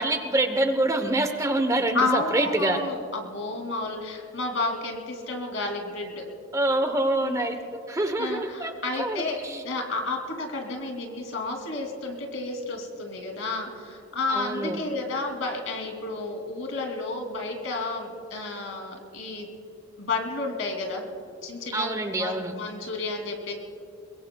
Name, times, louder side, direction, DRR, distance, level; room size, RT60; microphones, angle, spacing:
voice 1, 0.0-2.8 6.5-9.6 14.3-14.8 21.7-22.5, right 1 dB, 15° right, 7 dB, 0.9 m, -26 dB
voice 2, 1.9-6.2 7.2-7.3 8.2-9.4 9.6-19.5 20.0-21.0 21.4-21.9 22.2-23.5, left 3 dB, 70° left, 2 dB, 2.8 m, -31 dB
22.5 x 22.5 x 2.3 m, 2.6 s
head